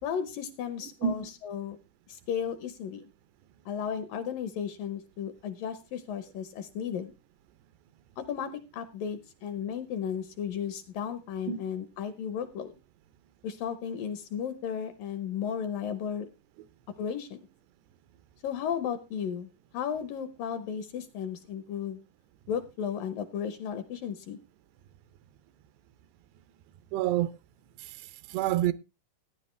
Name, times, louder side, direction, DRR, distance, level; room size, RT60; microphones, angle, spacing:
voice 1, 0.0-1.8 2.1-3.0 3.7-7.1 8.2-12.7 13.4-16.3 17.0-17.5 18.4-22.0 22.5-24.4, left 8 dB, 75° left, 2.2 m, -34 dB
voice 2, 26.9-27.4 27.8-28.7, right 11 dB, 85° right, 2.9 m, -28 dB
15.0 x 10.0 x 3.2 m
omnidirectional pair, 4.8 m